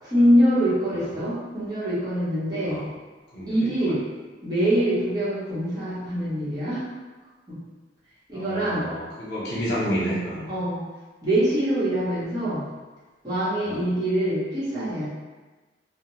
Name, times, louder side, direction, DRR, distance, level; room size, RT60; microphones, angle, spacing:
voice 1, 0.0-2.8 3.5-4.0 4.4-6.8 7.5-7.6 8.3-8.9 10.5-10.8 11.2-12.6 13.2-15.1, equal, 20° right, -12 dB, 1.0 m, -24 dB
voice 2, 3.3-4.0 8.3-10.5 13.6-13.9, equal, 60° left, -9 dB, 1.0 m, -30 dB
2.4 x 2.2 x 3.0 m, 1.3 s
head